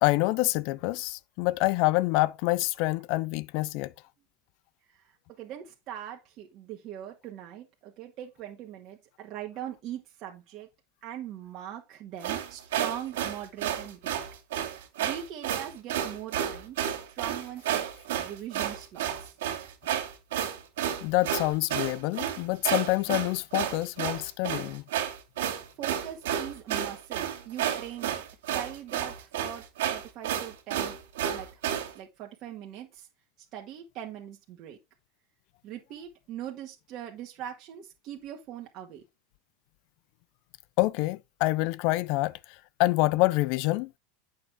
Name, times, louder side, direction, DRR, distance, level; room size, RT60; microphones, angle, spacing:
voice 1, 0.0-3.9 21.0-24.8 40.8-42.4 42.8-43.9, left 20 dB, 60° left, 0.4 m, -26 dB
voice 2, 4.9-10.7 11.0-14.2 15.0-17.8 18.1-19.3 25.8-28.2 28.5-31.0 31.3-33.1 33.5-34.8 35.6-39.0, right 11 dB, 50° right, 1.7 m, -41 dB
sound 1, 12.2-31.9, right 10 dB, 75° right, 2.5 m, -31 dB
8.6 x 6.6 x 3.5 m
hypercardioid pair, 95°, 0 cm